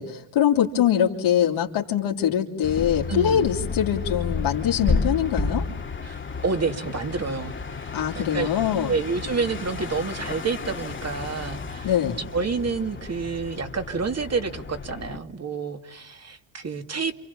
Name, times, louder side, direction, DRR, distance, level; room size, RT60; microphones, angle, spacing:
voice 1, 0.0-5.6 7.9-8.9 11.8-12.2, left 9 dB, 80° left, -2 dB, 3.0 m, -23 dB
sound 1, 2.6-15.2, left 4 dB, 25° left, 2.1 m, -32 dB
voice 2, 3.1-3.5 6.0-7.9 8.1-8.5 8.9-11.9 12.3-17.1, right 4 dB, 30° right, 7 dB, 2.5 m, -29 dB
29.5 x 28.0 x 7.1 m, 0.77 s
cardioid pair, 110°, 48 cm